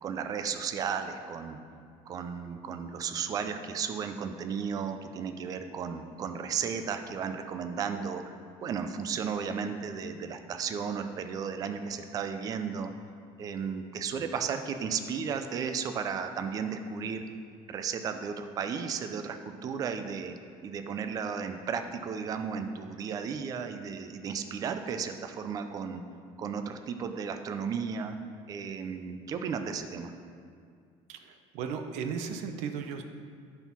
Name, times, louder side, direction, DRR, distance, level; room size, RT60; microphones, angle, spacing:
voice 1, 0.0-1.6 2.1-8.2 8.6-12.9 13.4-17.3 17.7-20.4 20.6-26.0 26.4-28.2 28.5-30.1, right 6 dB, 30° right, 8 dB, 0.5 m, -34 dB
voice 2, 31.1-33.0, right 6 dB, 90° right, 6 dB, 0.8 m, -36 dB
10.5 x 4.5 x 5.9 m, 2.2 s
cardioid pair, 170°, 11 cm